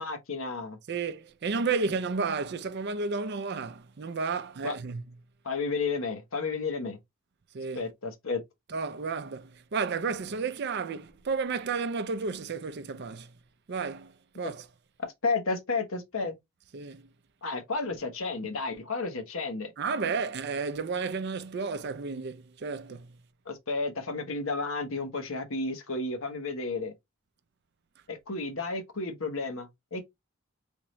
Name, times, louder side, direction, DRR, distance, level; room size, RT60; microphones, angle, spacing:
voice 1, 0.0-0.8 4.6-4.8 5.4-7.0 7.7-8.4 14.4-14.5 15.0-16.3 17.4-19.7 23.5-26.9 28.1-30.0, left 3 dB, 65° left, 1.0 m, -32 dB
voice 2, 0.9-5.0 7.5-7.8 8.7-13.3 13.7-14.1 14.4-14.6 16.7-17.0 19.8-23.1, right 4 dB, 50° right, 0.4 m, -32 dB
3.5 x 3.1 x 3.0 m
head